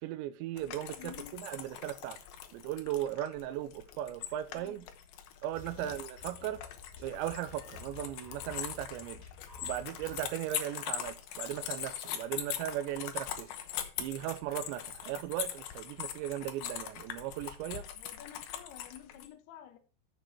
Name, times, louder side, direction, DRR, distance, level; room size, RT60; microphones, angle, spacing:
voice 1, 0.0-2.2 2.5-4.9 5.4-6.6 7.0-9.2 9.6-13.5 14.0-17.9, right 12 dB, 75° right, 2.8 m, -37 dB
sound 1, 0.6-19.3, left 10 dB, 90° left, 2.1 m, -42 dB
voice 2, 1.0-1.4 4.5-4.9 5.8-6.0 6.4-6.6 17.9-19.8, left 11 dB, 70° left, 2.6 m, -51 dB
sound 2, 5.5-10.3, left 5 dB, 40° left, 3.5 m, -52 dB
13.5 x 4.8 x 4.5 m
omnidirectional pair, 5.8 m